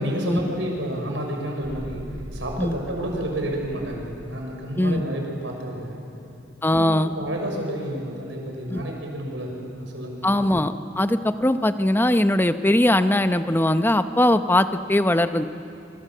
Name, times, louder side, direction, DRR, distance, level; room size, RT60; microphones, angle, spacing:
voice 1, 0.0-2.0 2.3-6.0 6.7-10.3, right 1 dB, 75° right, 1 dB, 5.9 m, -30 dB
sound 1, 1.6-4.8, equal, 55° right, 1.6 m, -40 dB
voice 2, 6.6-7.1 8.7-8.8 10.2-15.5, left 1 dB, 10° left, 10 dB, 0.7 m, -20 dB
27.0 x 24.5 x 7.7 m, 2.7 s
head